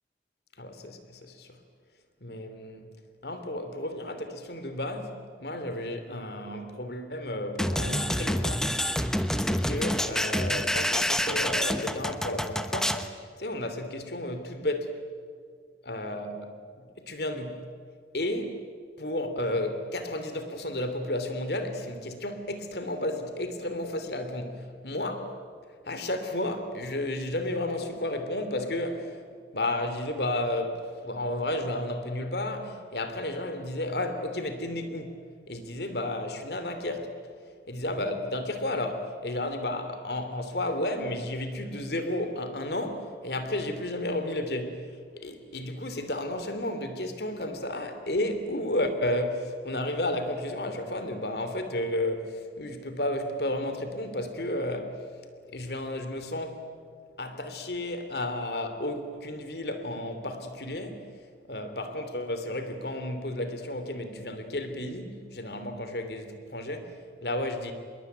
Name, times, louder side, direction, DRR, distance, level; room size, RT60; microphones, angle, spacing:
voice 1, 0.6-1.6 2.2-2.9 3.2-8.7 9.4-15.0 15.9-16.4 16.8-17.6 18.1-18.6 19.0-25.4 25.8-29.2 29.5-35.1 35.5-37.3 37.7-55.0 55.5-56.7 57.2-61.1 61.5-67.7, left 1 dB, 65° left, 2.9 m, -32 dB
sound 1, 7.6-13.1, equal, 5° left, 0.9 m, -28 dB
26.5 x 22.0 x 9.3 m
head